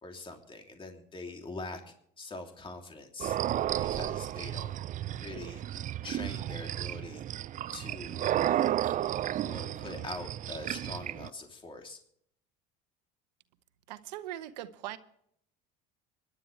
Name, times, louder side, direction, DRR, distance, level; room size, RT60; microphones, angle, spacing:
voice 1, 0.0-3.4 3.8-4.8 5.1-5.6 6.0-7.2 7.7-8.9 9.4-12.0, left 3 dB, 25° left, 3 dB, 3.0 m, -43 dB
sound 1, 3.2-11.3, right 12 dB, 40° right, 0.4 m, -33 dB
voice 2, 13.9-15.0, right 13 dB, 90° right, 12 dB, 1.1 m, -40 dB
24.5 x 11.5 x 3.3 m, 0.67 s
supercardioid pair, 85°, 21 cm